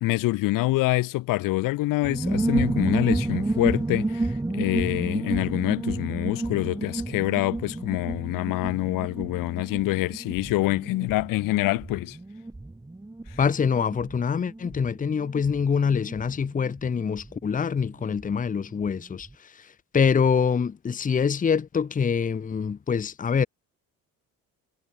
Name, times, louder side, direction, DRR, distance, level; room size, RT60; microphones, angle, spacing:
voice 1, 0.0-4.3 4.5-12.2, left 19 dB, 90° left, 2.9 m, -26 dB
sound 1, 2.0-18.3 18.6-18.7 18.9-19.3, right 2 dB, 10° right, 6.9 m, -31 dB
voice 2, 13.4-23.5, left 6 dB, 25° left, 1.1 m, -25 dB
cardioid pair, 125°, 32 cm